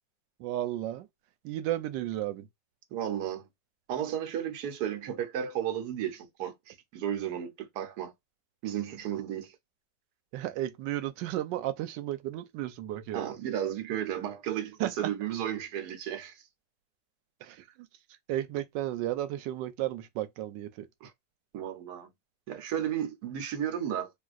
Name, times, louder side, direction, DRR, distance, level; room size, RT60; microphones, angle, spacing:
voice 1, 0.4-1.1 1.4-2.5 10.3-13.3 14.8-15.1 17.4-17.6 18.3-20.9, right 13 dB, 90° right, 1.3 m, -33 dB
voice 2, 2.9-3.5 3.9-8.1 8.6-9.6 13.1-16.4 21.0-21.1 21.5-22.1 22.5-24.1, right 10 dB, 70° right, 1.3 m, -33 dB
3.8 x 2.4 x 2.4 m
omnidirectional pair, 1.9 m